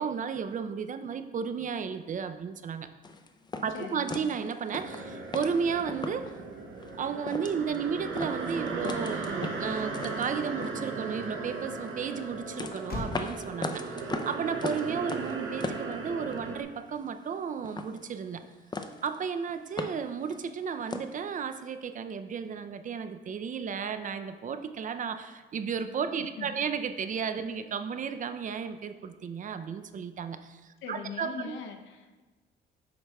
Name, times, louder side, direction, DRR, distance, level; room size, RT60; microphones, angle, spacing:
voice 1, 0.0-2.9 3.6-6.3 7.0-18.4 19.0-31.6, right 6 dB, 40° right, 9 dB, 0.4 m, -33 dB
sound 1, 3.0-6.4 6.8-6.9 7.2-7.8 8.2-11.3 11.8-16.6 16.8-17.4 17.6-18.5 18.7-19.2 19.5-21.2, left 3 dB, 20° left, 0.4 m, -39 dB
voice 2, 3.7-4.3 26.2-26.6 27.5-27.6 30.8-32.2, left 6 dB, 75° left, 5 dB, 0.7 m, -41 dB
sound 2, 4.8-16.6, right 4 dB, 70° right, 0.8 m, -37 dB
Motor vehicle (road), 12.8-17.4, left 2 dB, 50° left, 1.0 m, -48 dB
7.9 x 5.5 x 2.3 m, 1.2 s
cardioid pair, 90°, 20 cm